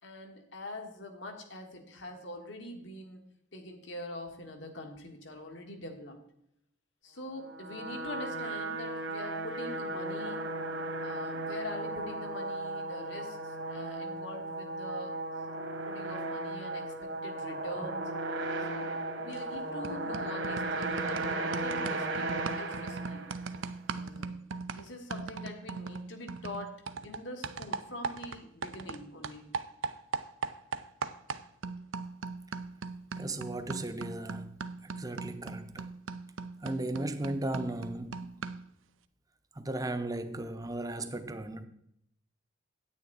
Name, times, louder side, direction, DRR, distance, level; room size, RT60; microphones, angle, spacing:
voice 1, 0.0-3.2 3.5-6.2 7.0-10.4 11.0-15.2 15.9-18.1 18.6-23.3 23.9-24.4 24.6-29.6, left 1 dB, 70° left, 1.6 m, -44 dB
sound 1, 7.4-23.7, right 2 dB, 65° right, 1.5 m, -36 dB
sound 2, 19.3-19.6 19.8-29.0 29.2-38.7, right 4 dB, 90° right, 0.6 m, -40 dB
voice 2, 33.2-35.9 36.6-38.3 39.5-41.7, right 1 dB, 20° right, 0.7 m, -36 dB
9.4 x 9.2 x 4.0 m
head